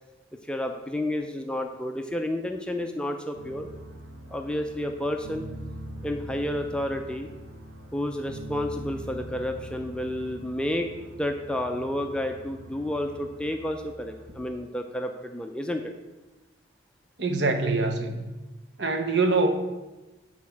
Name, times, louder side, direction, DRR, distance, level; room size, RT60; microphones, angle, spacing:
voice 1, 0.5-3.7 4.3-5.4 6.0-7.3 7.9-15.9, left 1 dB, 5° left, 4 dB, 0.4 m, -30 dB
sound 1, 3.3-14.3, right 1 dB, 90° right, 1.5 m, -43 dB
voice 2, 17.2-18.3 18.8-19.5, right 3 dB, 65° right, 5 dB, 0.9 m, -24 dB
8.5 x 4.2 x 5.8 m, 1.1 s
head